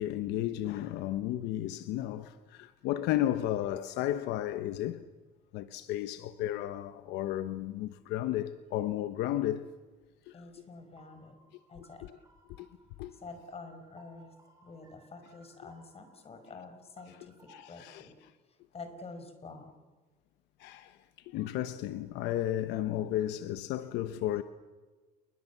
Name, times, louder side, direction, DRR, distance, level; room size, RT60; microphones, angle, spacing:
voice 1, 0.0-5.0 5.5-9.7 10.3-10.4 11.8-12.2 12.6-12.7 13.0-13.1 17.5-18.1 20.6-21.0 21.2-24.4, left 13 dB, 90° left, 1.0 m, -33 dB
voice 2, 10.3-11.4 11.7-12.0 13.1-14.3 14.6-17.3 17.7-18.2 18.7-19.7, left 3 dB, 35° left, 5.4 m, -47 dB
sound 1, 11.0-17.8, right 2 dB, 20° right, 6.1 m, -64 dB
29.0 x 22.5 x 7.3 m
cardioid pair, 110°, 17 cm